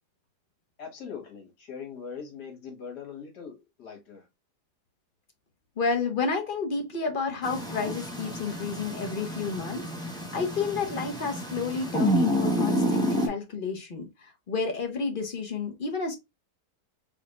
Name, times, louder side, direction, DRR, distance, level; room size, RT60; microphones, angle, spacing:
voice 1, 0.8-4.2, left 6 dB, 75° left, 2.0 m, -41 dB
voice 2, 5.8-16.2, left 4 dB, 40° left, 0.9 m, -31 dB
sound 1, 7.4-13.3, equal, 5° left, 0.5 m, -29 dB
3.9 x 3.5 x 2.4 m
omnidirectional pair, 1.7 m